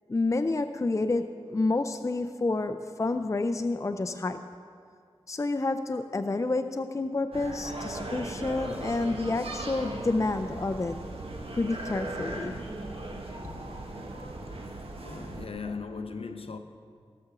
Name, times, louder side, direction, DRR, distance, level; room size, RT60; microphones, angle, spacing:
voice 1, 0.1-4.5 5.3-11.0 11.5-12.6, left 3 dB, 30° left, 0.4 m, -29 dB
sound 1, 7.3-15.5, right 2 dB, 70° right, 1.4 m, -38 dB
voice 2, 15.0-16.6, left 4 dB, 70° left, 0.8 m, -38 dB
16.5 x 6.0 x 6.9 m
wide cardioid pair, 75°, 10 cm